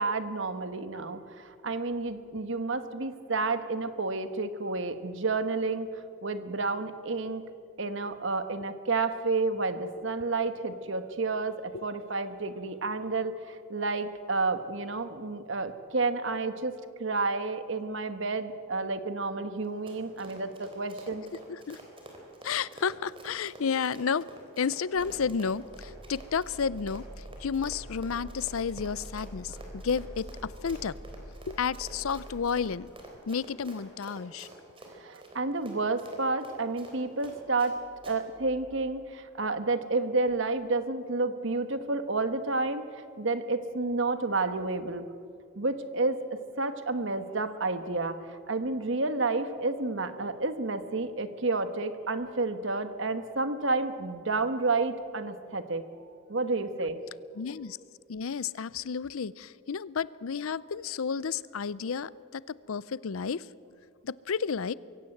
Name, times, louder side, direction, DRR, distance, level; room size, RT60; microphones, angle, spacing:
voice 1, 0.0-5.9 6.2-7.4 7.8-21.2 35.0-37.8 38.1-42.8 43.2-45.1 45.6-55.8 56.3-57.0, right 3 dB, 60° right, 10 dB, 1.3 m, -30 dB
Run, 19.6-37.7 38.0-38.2, right 1 dB, 25° right, 3.7 m, -48 dB
voice 2, 22.4-24.3 24.6-27.0 27.4-30.9 31.5-32.9 33.3-34.5 57.4-57.8 58.1-62.4 62.7-63.5 64.0-64.7, left 6 dB, 75° left, 20 dB, 0.5 m, -31 dB
sound 1, 24.9-33.1, right 1 dB, 50° left, 6.9 m, -46 dB
23.0 x 16.5 x 7.8 m, 2.3 s
head